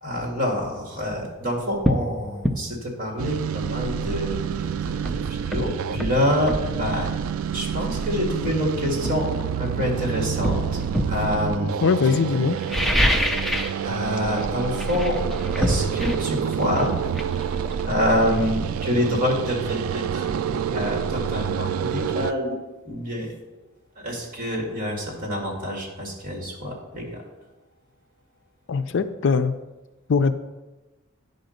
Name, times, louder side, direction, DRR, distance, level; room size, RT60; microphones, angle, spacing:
voice 1, 0.0-7.1 7.5-9.3 9.6-10.8 11.0-11.7 13.8-15.2 15.6-16.9 17.8-20.2 20.7-22.5 22.8-23.3 24.0-27.2, left 1 dB, 45° right, 0 dB, 2.3 m, -26 dB
sound 1, 1.1-1.2 1.8-2.1 2.4-2.6 4.5-4.6 5.1-6.7 7.8-7.9 8.4-9.8 10.4-11.2 12.5-13.8 14.1-14.4 14.7-18.3 18.6-18.7, equal, ahead, 0.5 m, -26 dB
sound 2, 3.2-22.3, right 8 dB, 80° right, 0.3 m, -28 dB
voice 2, 11.8-12.6 28.7-29.5 30.1-30.3, left 5 dB, 60° left, 10 dB, 0.4 m, -21 dB
9.9 x 4.0 x 6.6 m, 1.1 s
head